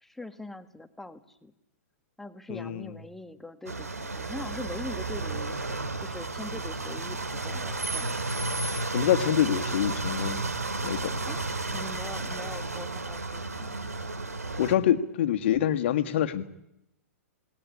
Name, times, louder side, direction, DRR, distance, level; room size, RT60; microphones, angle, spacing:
voice 1, 0.0-1.5 2.2-8.2 11.3-11.4 11.7-13.8, left 2 dB, 5° left, 10 dB, 1.6 m, -42 dB
voice 2, 2.5-2.9 8.9-10.5 10.8-11.2 14.6-16.5, left 11 dB, 45° left, 10 dB, 1.8 m, -26 dB
sound 1, 3.7-14.7, right 2 dB, 75° right, 2.2 m, -32 dB
27.5 x 20.0 x 10.0 m, 0.85 s
figure-of-eight pair, 110°, 8 cm